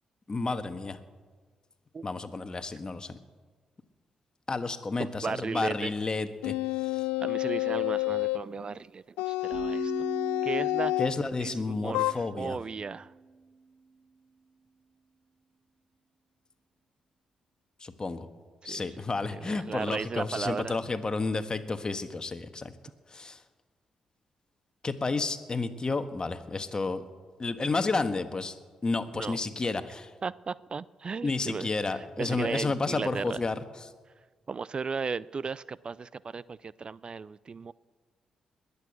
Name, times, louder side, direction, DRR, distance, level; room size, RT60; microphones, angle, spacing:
voice 1, 0.3-1.0 2.0-3.2 4.5-6.5 6.8-7.0 11.0-12.6 17.8-18.3 18.6-22.7 23.1-23.4 24.8-27.0 27.4-28.5 28.8-30.1 31.2-33.6, left 3 dB, 35° left, 10 dB, 1.4 m, -31 dB
voice 2, 5.0-5.9 7.2-9.9 10.4-10.9 11.4-13.1 18.6-18.9 19.3-20.8 29.1-29.4 30.2-33.4 34.5-37.7, right 5 dB, 45° right, 21 dB, 0.4 m, -35 dB
sound 1, 6.4-8.5 9.2-11.2 11.9-12.1, left 18 dB, 80° left, 0.4 m, -29 dB
sound 2, 9.5-13.4, right 4 dB, 65° right, 2.4 m, -40 dB
21.0 x 8.4 x 8.3 m, 1.5 s
hypercardioid pair, 40°, 2 cm